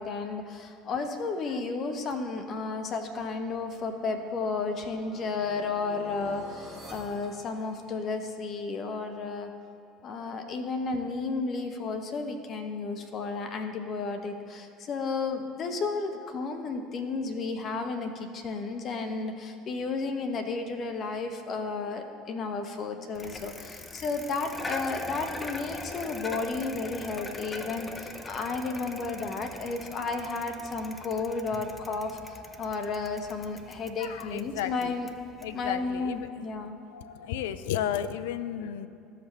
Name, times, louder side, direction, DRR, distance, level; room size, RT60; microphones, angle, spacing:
voice 1, 0.0-9.5 10.0-35.1 35.5-36.7, left 4 dB, 45° left, 6 dB, 0.9 m, -33 dB
sound 1, 3.3-8.3, equal, 10° right, 2.0 m, -49 dB
Bicycle, 23.1-36.3, left 2 dB, 20° left, 0.6 m, -42 dB
voice 2, 34.0-35.0 35.4-36.5 36.9-38.9, left 10 dB, 75° left, 13 dB, 0.4 m, -33 dB
14.5 x 5.1 x 3.2 m, 2.6 s
hypercardioid pair, 70°, 0 cm